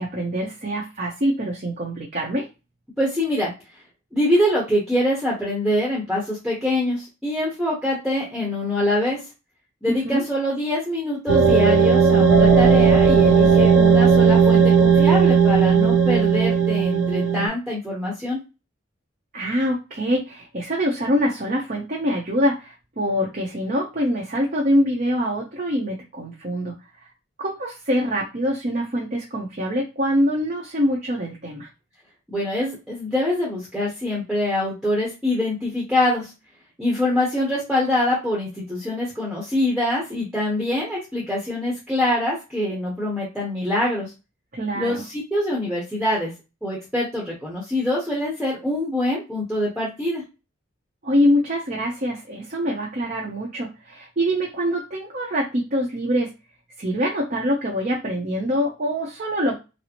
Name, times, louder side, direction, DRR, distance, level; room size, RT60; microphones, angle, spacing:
voice 1, 0.0-2.5 9.9-10.2 19.3-26.7 27.4-31.7 44.5-45.0 51.0-56.3 56.8-59.6, equal, 40° right, -2 dB, 0.7 m, -24 dB
voice 2, 3.0-3.5 4.1-9.2 9.8-18.4 32.3-36.3 36.8-44.1 44.7-46.3 46.6-50.2, left 1 dB, ahead, -5 dB, 0.9 m, -24 dB
sound 1, 11.3-17.5, right 6 dB, 80° right, 0.8 m, -16 dB
4.1 x 2.0 x 2.9 m, 0.28 s
head